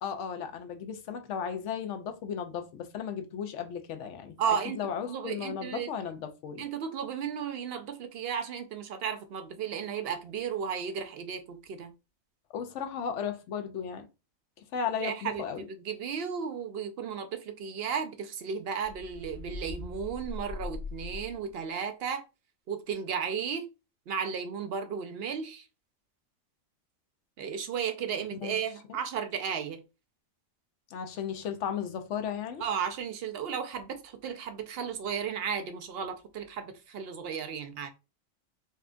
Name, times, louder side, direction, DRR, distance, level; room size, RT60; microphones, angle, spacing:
voice 1, 0.0-6.6 12.5-14.0 14.7-15.6 28.4-28.6 30.9-32.6, left 7 dB, 70° left, 0.8 m, -35 dB
voice 2, 4.4-4.8 5.1-5.9 6.6-11.9 15.0-22.2 22.7-23.7 24.1-25.7 27.4-29.8 32.6-37.9, right 7 dB, 65° right, 0.6 m, -34 dB
sound 1, 18.8-21.6, left 3 dB, 35° left, 0.8 m, -41 dB
4.3 x 2.3 x 2.4 m
omnidirectional pair, 1.4 m